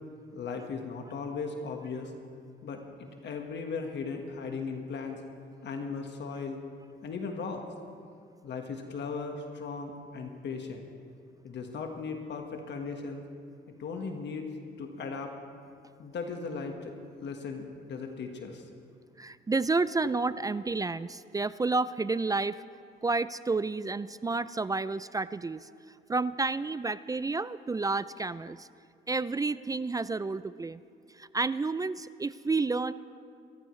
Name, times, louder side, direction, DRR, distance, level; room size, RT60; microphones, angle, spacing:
voice 1, 0.3-2.1 2.6-5.2 5.6-6.6 7.0-7.7 8.4-10.9 11.4-13.2 13.7-14.5 14.8-15.4 16.0-16.9 17.2-18.7, left 4 dB, 65° left, 3 dB, 1.5 m, -37 dB
voice 2, 19.2-22.6 23.0-25.7 26.1-28.7 29.1-30.8 31.1-32.9, right 3 dB, 20° right, 16 dB, 0.3 m, -30 dB
26.5 x 14.0 x 3.2 m, 2.3 s
cardioid pair, 90°, 20 cm